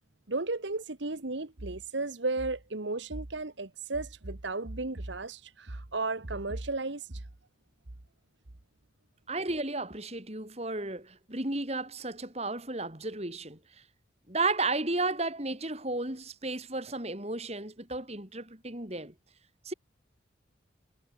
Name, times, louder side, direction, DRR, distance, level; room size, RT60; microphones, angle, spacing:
voice 1, 0.3-7.2, right 3 dB, 70° right, 1.5 m, -34 dB
voice 2, 9.3-13.6 14.3-19.1 19.7-19.8, right 2 dB, 35° right, 3.7 m, -33 dB
head